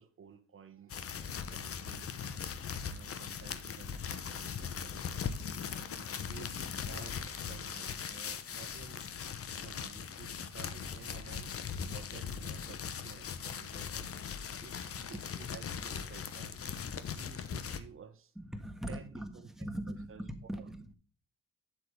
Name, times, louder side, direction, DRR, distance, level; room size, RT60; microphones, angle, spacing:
voice 1, 0.0-5.3 5.9-9.0 9.5-14.2 14.6-16.6 17.0-18.3 18.9-20.7, right 6 dB, 45° right, 1.3 m, -53 dB
sound 1, 0.9-17.8, left 7 dB, 50° left, 1.0 m, -40 dB
voice 2, 18.3-20.9, right 1 dB, ahead, 1.6 m, -41 dB
8.0 x 7.1 x 3.4 m
cardioid pair, 90°, 30 cm